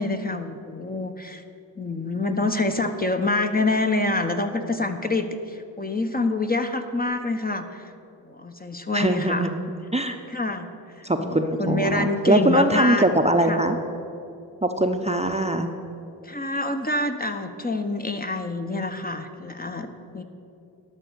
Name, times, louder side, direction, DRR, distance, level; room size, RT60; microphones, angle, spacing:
voice 1, 0.0-1.4 1.8-7.9 8.2-9.5 10.3-10.7 11.0-13.1 13.4-13.6 16.2-20.2, left 2 dB, 20° left, 6 dB, 0.8 m, -26 dB
voice 2, 8.9-9.5 9.9-10.2 11.0-13.8 14.6-15.7, right 1 dB, 15° right, 5 dB, 0.7 m, -22 dB
12.0 x 6.1 x 6.8 m, 2.7 s
supercardioid pair, 40°, 47 cm